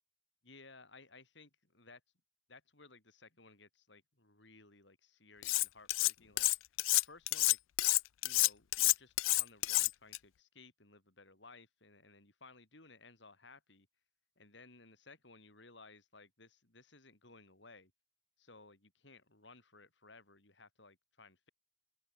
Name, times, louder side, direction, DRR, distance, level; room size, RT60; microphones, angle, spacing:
voice 1, 0.4-2.0 2.5-6.5 6.9-7.6 8.2-13.9 14.4-17.9 18.4-21.5, left 3 dB, 65° left, 5.1 m, -59 dB
Cutlery silverware, 5.4-6.1 6.4-10.2, left 20 dB, 90° left, 0.4 m, -29 dB
open air
head